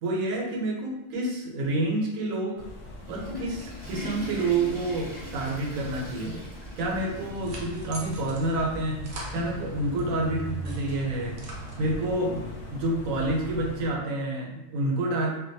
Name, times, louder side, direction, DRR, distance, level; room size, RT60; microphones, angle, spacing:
voice 1, 0.0-2.6 3.1-6.4 6.8-9.0 9.3-11.4 11.8-15.3, right 2 dB, 80° right, 0 dB, 1.0 m, -28 dB
sound 1, 2.6-13.9, equal, 70° left, 0.9 m, -40 dB
Water / Toilet flush, 2.8-7.8 8.1-8.2 9.0-9.1 10.3-10.4, equal, 10° left, 0.5 m, -41 dB
sound 2, 7.0-10.1 10.5-12.2, right 1 dB, 65° right, 0.6 m, -43 dB
2.4 x 2.2 x 2.6 m, 0.94 s
omnidirectional pair, 1.4 m